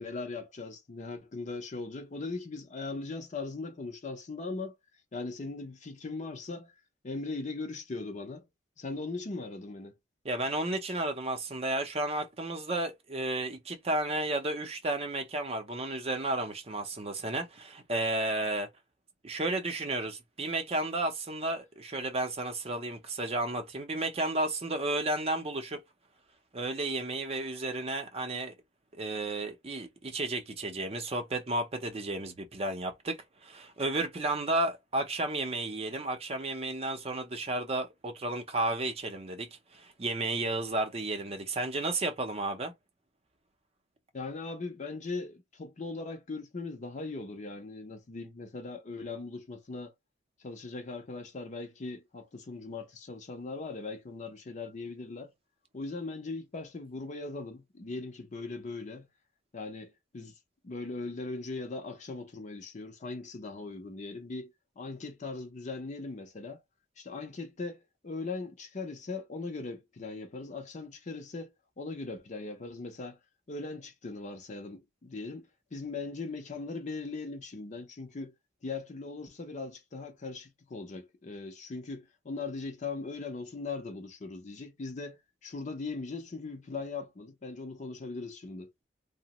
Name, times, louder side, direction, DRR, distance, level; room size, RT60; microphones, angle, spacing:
voice 1, 0.0-4.7 5.1-6.7 7.0-8.5 8.8-9.9 44.1-49.9 50.4-55.3 55.7-59.1 59.5-60.4 60.6-66.6 67.0-73.2 73.5-78.3 78.6-88.7, left 3 dB, 40° left, 0.5 m, -39 dB
voice 2, 10.2-18.7 19.2-25.8 26.5-28.5 28.9-42.7, right 2 dB, 35° right, 0.6 m, -32 dB
2.8 x 2.0 x 2.9 m
head